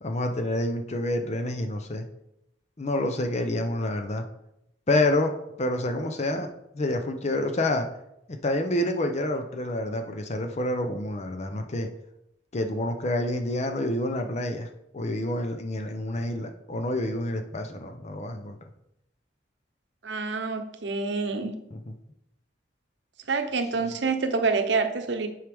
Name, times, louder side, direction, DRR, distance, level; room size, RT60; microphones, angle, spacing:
voice 1, 0.0-2.0 2.8-4.2 4.9-5.3 5.6-6.5 6.7-7.9 8.3-11.9 12.5-14.7 14.9-18.6 21.7-21.9, left 1 dB, 35° left, 6 dB, 0.6 m, -28 dB
voice 2, 20.0-21.5 23.3-25.3, right 4 dB, 70° right, 7 dB, 0.8 m, -27 dB
9.1 x 4.7 x 3.5 m, 0.80 s
head